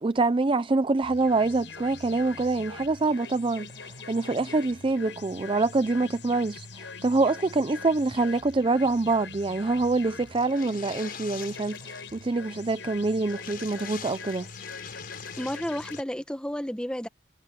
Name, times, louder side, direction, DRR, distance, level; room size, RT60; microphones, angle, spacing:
voice 1, 0.0-14.5, right 3 dB, 30° right, 0.5 m, -25 dB
sound 1, 1.0-16.0, left 4 dB, 75° left, 6.3 m, -43 dB
sound 2, 10.3-12.3 12.5-12.6 12.9-13.0 13.3-16.0, left 7 dB, 55° left, 7.6 m, -44 dB
voice 2, 15.4-17.1, equal, 5° left, 1.3 m, -32 dB
head